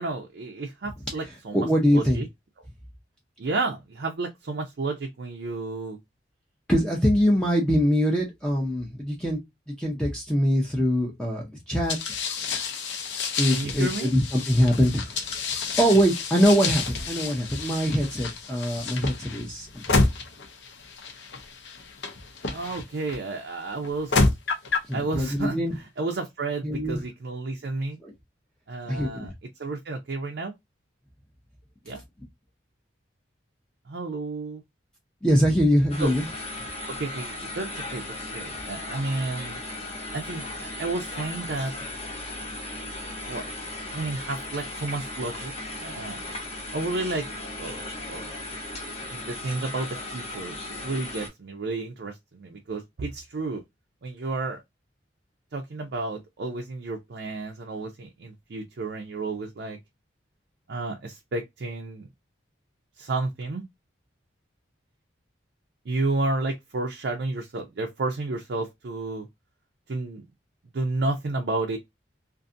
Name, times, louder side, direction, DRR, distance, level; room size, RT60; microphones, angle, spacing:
voice 1, 0.0-2.3 3.4-6.0 13.5-14.1 22.5-24.3 24.9-25.6 26.0-28.0 28.7-29.3 29.6-30.5 31.9-32.0 33.9-34.6 36.0-36.1 36.9-38.0 38.3-39.6 40.1-41.7 43.3-43.4 43.9-45.5 45.8-46.2 46.7-47.3 47.6-48.3 49.1-53.6 54.0-54.6 55.5-59.8 60.7-62.1 63.0-63.6 65.9-69.3 69.9-70.2 70.7-71.8, right 3 dB, 60° right, 0.5 m, -31 dB
voice 2, 1.5-2.2 6.7-9.4 9.7-12.0 13.4-15.2 15.8-20.0 24.9-25.8 26.6-27.0 28.0-28.1 28.9-29.3 35.2-36.3, equal, 5° left, 0.5 m, -23 dB
sound 1, 11.9-23.2 23.8-24.9, left 3 dB, 65° left, 0.6 m, -29 dB
sound 2, 35.9-51.3, left 2 dB, 30° left, 0.8 m, -36 dB
2.5 x 2.5 x 2.4 m
head